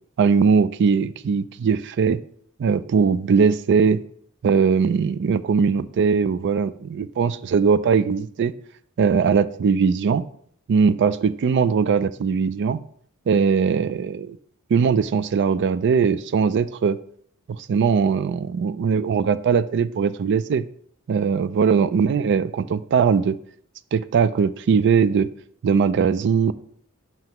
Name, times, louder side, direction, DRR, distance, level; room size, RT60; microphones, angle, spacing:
voice 1, 0.2-2.2 2.6-4.0 4.4-8.5 9.0-10.3 10.7-12.8 13.3-14.4 14.7-17.0 17.5-20.6 21.1-23.4 23.9-25.3 25.6-26.5, right 6 dB, 55° right, 16 dB, 0.3 m, -20 dB
7.6 x 5.8 x 3.0 m, 0.63 s
head